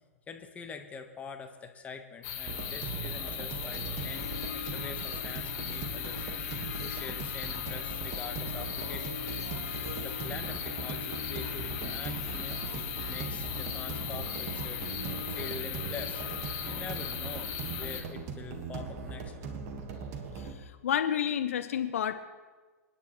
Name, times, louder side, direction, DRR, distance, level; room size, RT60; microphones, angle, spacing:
voice 1, 0.3-6.3 6.8-9.2 9.6-14.8 15.3-16.2 16.6-19.3, left 5 dB, 15° left, 6 dB, 1.2 m, -45 dB
sound 1, 2.2-18.0, left 9 dB, 35° left, 1.8 m, -38 dB
sound 2, 2.5-20.5, right 5 dB, 35° right, 1.5 m, -40 dB
Harp, 3.6-18.1, left 6 dB, 75° left, 1.7 m, -46 dB
voice 2, 20.4-22.2, left 9 dB, 60° left, 9 dB, 0.8 m, -30 dB
28.5 x 9.6 x 3.1 m, 1.3 s
figure-of-eight pair, 105°, 8 cm